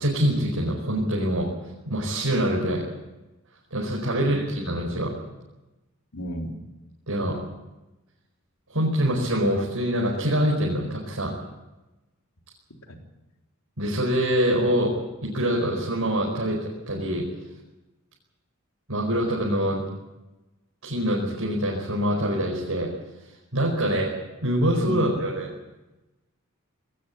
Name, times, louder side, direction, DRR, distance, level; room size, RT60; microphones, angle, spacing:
voice 1, 0.0-1.5 1.8-2.8 3.7-5.1 7.1-7.4 8.7-11.3 13.8-14.9 15.2-17.2 18.9-19.8 20.8-22.9 23.5-24.1 24.4-25.5, equal, 75° right, -2 dB, 4.9 m, -24 dB
voice 2, 6.1-6.6 12.9-13.0 24.9-25.5, left 1 dB, 90° left, 2 dB, 3.7 m, -34 dB
20.0 x 18.0 x 8.5 m, 1.1 s
head